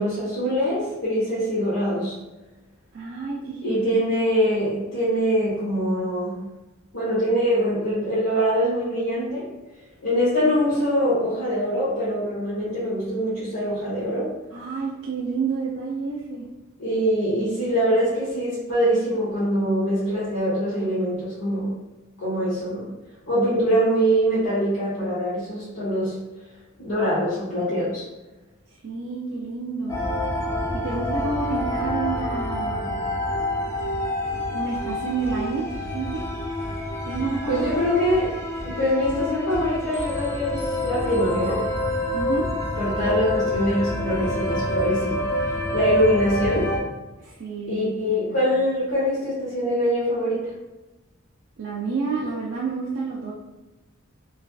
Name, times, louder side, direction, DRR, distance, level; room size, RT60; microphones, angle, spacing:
voice 1, 0.0-2.1 3.6-6.4 6.9-9.5 10.0-14.3 16.8-21.7 22.2-22.9 23.3-26.2 26.8-28.1 37.5-38.3 38.6-41.6 42.7-46.7 47.7-50.5, equal, 80° left, -11 dB, 1.1 m, -23 dB
voice 2, 2.9-3.8 14.5-16.5 28.8-30.0 30.8-33.0 34.3-35.7 35.9-36.2 37.1-37.6 42.1-42.5 47.2-48.2 51.6-53.3, right 4 dB, 60° right, -4 dB, 0.4 m, -29 dB
sound 1, 29.9-46.8, left 1 dB, 15° left, 0.4 m, -27 dB
sound 2, 33.3-41.3, right 1 dB, 55° left, 1.5 m, -40 dB
3.2 x 2.4 x 2.3 m, 1.1 s
head